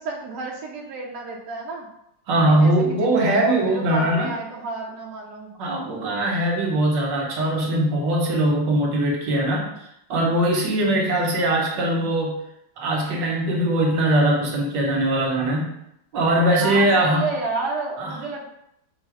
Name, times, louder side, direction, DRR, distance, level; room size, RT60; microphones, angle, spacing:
voice 1, 0.0-1.9 2.5-5.5 16.6-18.4, right 3 dB, 70° right, 0 dB, 1.2 m, -31 dB
voice 2, 2.3-4.3 5.6-12.3 12.8-15.7 16.1-17.3 18.0-18.1, right 1 dB, 85° right, -2 dB, 1.7 m, -21 dB
5.1 x 2.1 x 4.6 m, 0.79 s
omnidirectional pair, 1.9 m